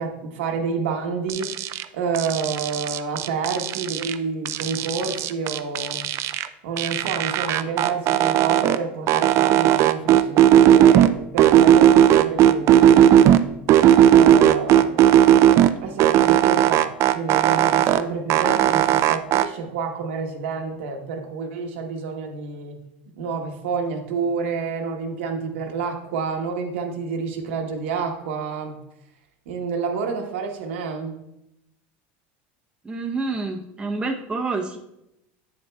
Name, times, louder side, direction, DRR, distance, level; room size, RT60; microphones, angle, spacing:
voice 1, 0.0-6.1 6.6-13.2 14.1-15.1 15.8-22.8 23.2-28.8 29.5-31.1, right 5 dB, 80° right, 3 dB, 1.1 m, -29 dB
sound 1, 1.3-1.8 2.1-4.1 4.4-6.5 6.8-8.8 9.1-11.1 11.4-13.4 13.7-15.7 16.0-18.0 18.3-19.4, right 11 dB, 45° right, 0.3 m, -16 dB
voice 2, 32.8-34.8, right 3 dB, 15° right, 1 dB, 0.8 m, -28 dB
8.5 x 7.0 x 2.3 m, 0.85 s
supercardioid pair, 110°, 6 cm